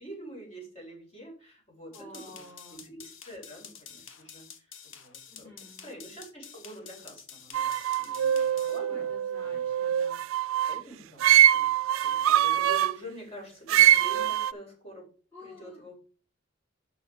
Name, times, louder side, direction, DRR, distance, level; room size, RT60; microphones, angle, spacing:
voice 1, 0.0-2.4 2.7-9.7 10.3-11.7 12.0-15.1 15.4-15.9, right 1 dB, 35° left, -2 dB, 4.7 m, -46 dB
sound 1, 1.9-8.8, left 7 dB, 80° left, 1.2 m, -49 dB
voice 2, 1.9-2.8 5.3-5.9 8.8-10.2 15.3-15.9, left 2 dB, 15° left, -4 dB, 3.5 m, -50 dB
sound 2, 7.5-10.8 11.2-12.9 13.7-14.5, right 11 dB, 85° right, 0.3 m, -23 dB
5.7 x 5.7 x 6.6 m, 0.39 s
head